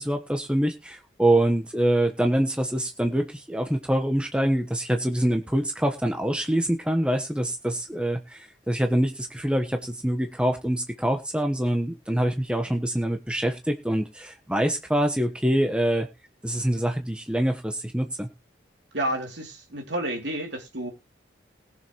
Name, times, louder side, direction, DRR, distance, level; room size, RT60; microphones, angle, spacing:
voice 1, 0.0-16.1 16.4-18.3, right 1 dB, 5° right, 1.2 m, -25 dB
voice 2, 18.9-20.9, right 1 dB, 70° right, 3.1 m, -30 dB
20.5 x 6.9 x 3.2 m
head